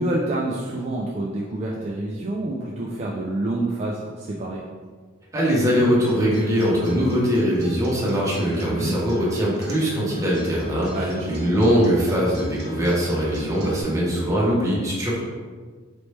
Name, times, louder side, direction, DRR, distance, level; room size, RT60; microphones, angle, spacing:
voice 1, 0.0-4.6 8.6-8.9 10.9-11.3, right 1 dB, 35° right, -3 dB, 0.4 m, -27 dB
voice 2, 5.3-15.2, equal, 15° right, -6 dB, 1.0 m, -21 dB
Acoustic guitar, 5.8-13.8, left 1 dB, 55° right, 0.9 m, -39 dB
4.2 x 3.1 x 3.3 m, 1.5 s
head